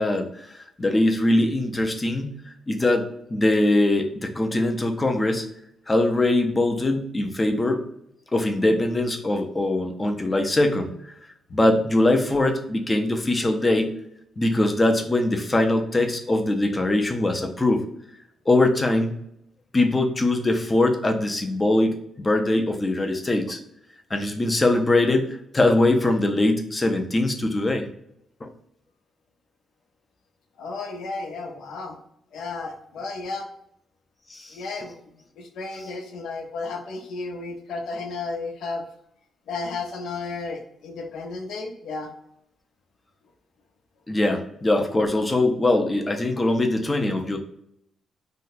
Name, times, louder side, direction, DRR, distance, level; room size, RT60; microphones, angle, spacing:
voice 1, 0.0-2.4 2.7-5.5 5.9-7.8 8.3-10.9 11.5-13.9 14.4-17.9 18.5-19.2 19.7-23.6 24.1-27.9 28.4-28.5 34.3-34.5 44.1-47.4, left 2 dB, 15° left, 4 dB, 0.4 m, -22 dB
voice 2, 30.6-32.0 32.3-33.5 34.5-35.0 35.4-38.8 39.5-42.1, left 3 dB, 80° left, 3 dB, 0.6 m, -33 dB
2.6 x 2.1 x 3.9 m, 0.74 s
wide cardioid pair, 175°, 0 cm